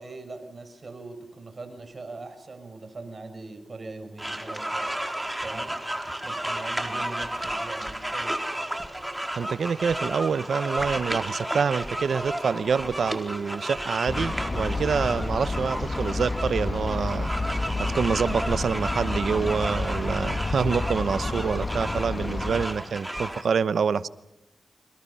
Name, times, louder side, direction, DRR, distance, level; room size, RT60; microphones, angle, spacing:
voice 1, 0.0-4.8 5.4-5.7 6.2-8.4, right 3 dB, 50° right, 6.1 m, -41 dB
sound 1, 4.2-23.4, right 1 dB, 10° right, 4.2 m, -33 dB
sound 2, 6.8-10.4 10.7-12.4 12.6-23.3, left 1 dB, 20° left, 3.0 m, -45 dB
voice 2, 9.4-17.3 17.8-24.1, right 6 dB, 85° right, 0.9 m, -26 dB
sound 3, 14.1-22.7, left 2 dB, 45° left, 2.0 m, -30 dB
29.0 x 26.0 x 5.7 m
cardioid pair, 65°, 0 cm